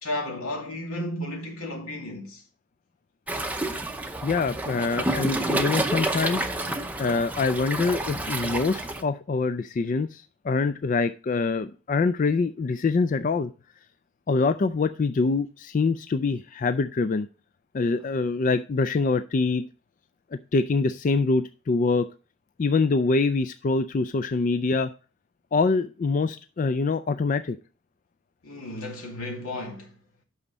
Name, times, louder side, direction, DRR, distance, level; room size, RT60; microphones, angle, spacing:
voice 1, 0.0-2.4 18.0-18.2 28.4-29.9, left 1 dB, 85° left, 2.4 m, -33 dB
Waves surf, 3.3-9.0, right 1 dB, 5° right, 0.6 m, -29 dB
voice 2, 4.2-13.5 14.3-17.3 17.7-19.7 20.3-22.1 22.6-24.9 25.5-27.6, left 4 dB, 35° left, 0.3 m, -25 dB
8.8 x 6.0 x 4.1 m
head